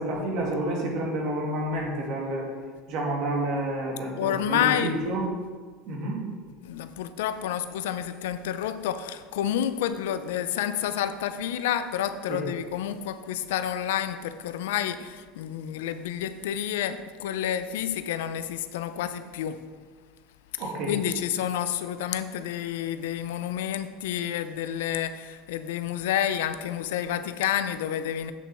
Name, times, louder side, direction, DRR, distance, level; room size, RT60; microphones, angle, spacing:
voice 1, 0.0-2.5 2.9-5.2 5.9-6.2 12.3-12.5 20.6-20.9, right 1 dB, 60° right, 2.5 m, -29 dB
voice 2, 4.2-4.9 6.6-19.6 20.9-28.3, left 10 dB, 80° left, 0.5 m, -29 dB
8.2 x 6.9 x 4.4 m
hypercardioid pair, 90°, 0 cm